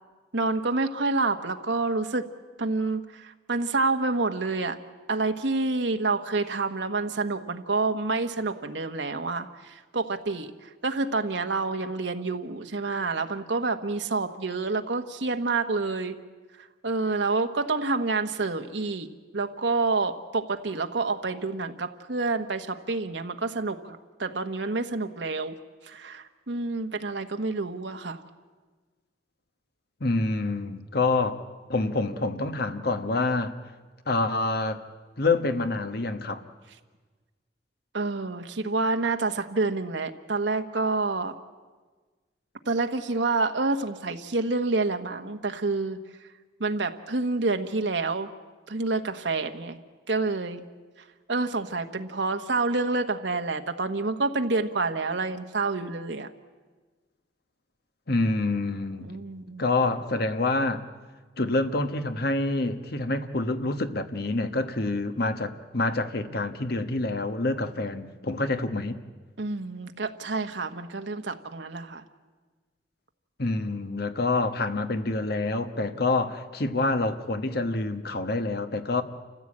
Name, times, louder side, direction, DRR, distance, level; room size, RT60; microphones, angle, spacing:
voice 1, 0.3-2.3 2.6-4.8 5.1-16.2 16.6-19.1 19.3-25.5 25.8-28.2 37.9-41.3 42.7-46.0 46.6-48.3 48.7-49.8 50.1-50.6 51.3-56.3 59.0-59.6 69.4-72.0, right 3 dB, 75° right, 6 dB, 1.2 m, -28 dB
voice 2, 30.0-31.4 31.7-33.5 34.1-34.8 35.2-36.4 58.1-59.1 59.6-60.8 61.4-69.0 73.4-79.0, left 2 dB, 60° left, 9 dB, 1.3 m, -27 dB
28.5 x 15.0 x 8.7 m, 1.4 s
head